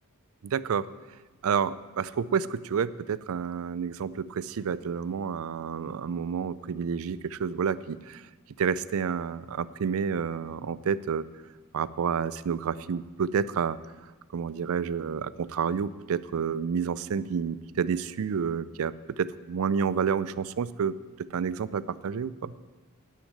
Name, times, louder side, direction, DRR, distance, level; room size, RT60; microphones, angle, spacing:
voice 1, 0.4-0.9 1.4-8.2 8.6-11.2 11.7-13.8 14.3-22.5, right 6 dB, 65° right, 18 dB, 0.4 m, -29 dB
10.0 x 6.2 x 8.7 m, 1.3 s
head